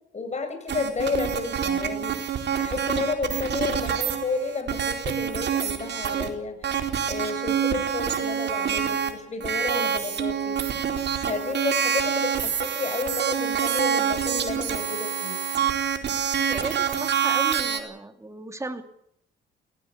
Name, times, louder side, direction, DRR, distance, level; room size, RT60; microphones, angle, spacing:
voice 1, 0.1-10.6 11.2-15.4, left 4 dB, 35° left, 7 dB, 7.6 m, -31 dB
sound 1, 0.7-6.3 6.6-9.1 9.4-17.8, right 8 dB, 60° right, 4.2 m, -26 dB
voice 2, 16.5-18.8, right 2 dB, 15° right, 7 dB, 2.8 m, -35 dB
18.5 x 18.0 x 8.8 m, 0.71 s
cardioid pair, 90°, 20 cm